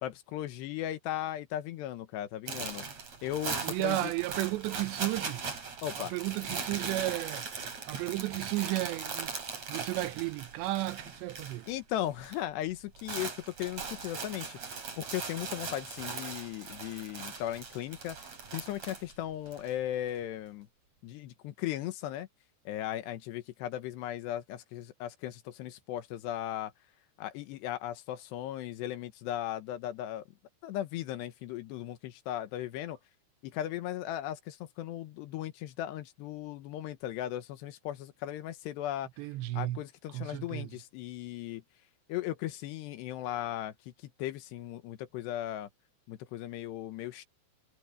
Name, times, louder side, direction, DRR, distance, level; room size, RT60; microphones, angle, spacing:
voice 1, 0.0-2.8 3.2-4.1 5.8-6.2 11.7-18.2 18.5-20.7 21.0-22.3 22.7-26.7 27.2-30.2 30.6-33.0 33.4-39.1 39.5-41.6 42.1-45.7 46.1-47.3, left 12 dB, 80° left, 3.3 m, -37 dB
sound 1, 2.5-11.8 12.0-12.4 12.7-19.7, right 5 dB, 40° right, 5.2 m, -39 dB
voice 2, 3.6-5.4 6.0-7.5 7.9-9.3 9.7-11.7 39.2-39.8 40.1-40.7, right 17 dB, 85° right, 3.1 m, -33 dB
omnidirectional pair, 4.9 m